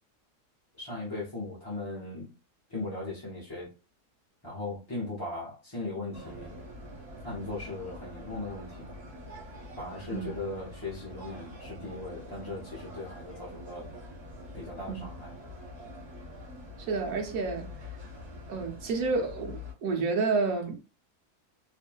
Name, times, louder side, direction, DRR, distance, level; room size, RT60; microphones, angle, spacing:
voice 1, 0.8-2.3 2.7-3.7 4.4-6.6 7.2-9.0 9.8-13.9 14.5-15.4, left 2 dB, 25° left, 0.5 m, -38 dB
sound 1, 6.1-19.7, left 1 dB, 20° right, 1.5 m, -45 dB
voice 2, 16.9-17.7 18.5-20.9, right 4 dB, 65° right, 1.2 m, -30 dB
3.0 x 2.5 x 2.2 m
omnidirectional pair, 1.7 m